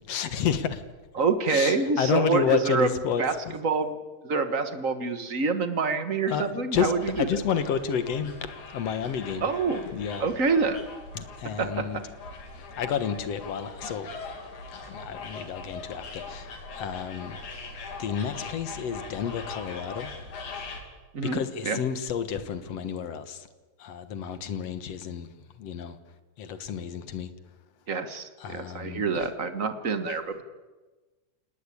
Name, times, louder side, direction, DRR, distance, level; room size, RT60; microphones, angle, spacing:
voice 1, 0.1-0.8 1.5-3.6 6.3-8.3 8.7-9.5 9.9-10.3 11.2-12.0 12.5-14.1 14.9-17.4 18.0-20.1 21.3-23.5 23.8-25.3 25.6-26.0 26.4-27.3 28.4-29.3 30.1-30.2, left 7 dB, 60° left, 2.3 m, -30 dB
voice 2, 1.2-2.9 3.2-4.0 4.2-7.3 9.4-9.9 10.2-10.8 11.6-11.7 21.1-21.8 27.9-30.4, right 4 dB, 40° right, 1.1 m, -26 dB
sound 1, 7.0-20.8, left 3 dB, 90° left, 4.4 m, -41 dB
28.5 x 19.0 x 8.6 m
omnidirectional pair, 3.4 m